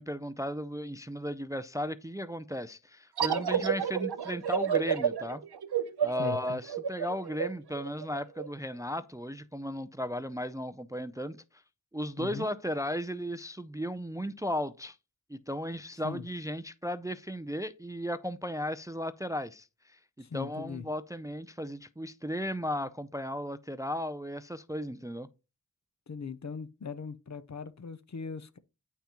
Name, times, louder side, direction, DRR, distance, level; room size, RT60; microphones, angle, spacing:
voice 1, 0.0-5.4 6.0-11.4 11.9-15.0 15.3-20.0 20.3-25.3, equal, 10° right, 0.4 m, -35 dB
sound 1, 3.2-8.5, right 8 dB, 85° right, 0.7 m, -30 dB
voice 2, 6.2-6.6 12.2-12.5 16.0-16.3 20.2-20.8 26.1-28.6, left 5 dB, 45° left, 0.6 m, -39 dB
8.3 x 5.8 x 2.9 m
wide cardioid pair, 45°, 38 cm